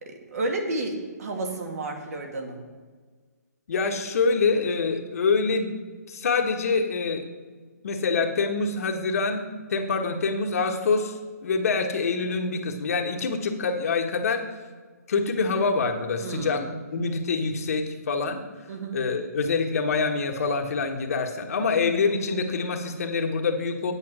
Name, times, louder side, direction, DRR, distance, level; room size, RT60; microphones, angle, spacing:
voice 1, 0.0-2.6 16.2-16.7 18.7-19.0, right 2 dB, 60° right, 2 dB, 2.1 m, -31 dB
voice 2, 3.7-5.7 6.1-7.2 7.8-9.4 9.7-14.4 15.1-18.4 18.9-23.9, left 4 dB, 55° left, 3 dB, 1.4 m, -25 dB
8.4 x 8.4 x 6.1 m, 1.5 s
hypercardioid pair, 165°, 9 cm